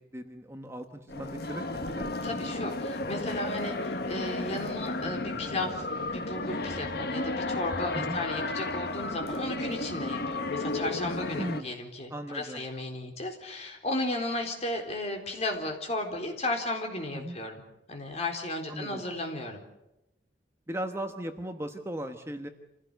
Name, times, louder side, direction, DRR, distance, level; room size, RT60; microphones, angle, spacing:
voice 1, 0.0-2.1 7.9-8.2 11.4-11.7 12.1-12.6 17.1-17.4 18.7-19.0 20.7-22.5, right 1 dB, 15° right, 6 dB, 1.2 m, -37 dB
sound 1, 1.1-11.6, left 2 dB, 60° left, 1.5 m, -33 dB
voice 2, 2.2-17.6 17.9-19.6, left 2 dB, 35° left, 3 dB, 4.1 m, -34 dB
27.0 x 16.5 x 8.0 m, 0.94 s
head